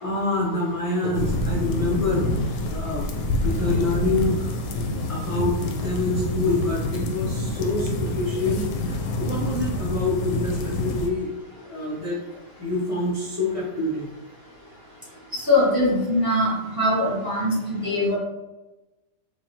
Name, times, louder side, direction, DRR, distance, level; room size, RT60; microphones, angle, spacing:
voice 1, 0.0-2.2 2.7-3.1 3.4-4.5 5.1-11.3 11.6-12.2 12.6-14.1, left 2 dB, 35° left, -6 dB, 0.5 m, -26 dB
sound 1, 1.1-11.1, left 1 dB, 90° left, 1.2 m, -27 dB
voice 2, 15.5-18.2, left 1 dB, 15° right, -5 dB, 0.9 m, -22 dB
5.0 x 2.6 x 2.9 m, 1.1 s
omnidirectional pair, 1.8 m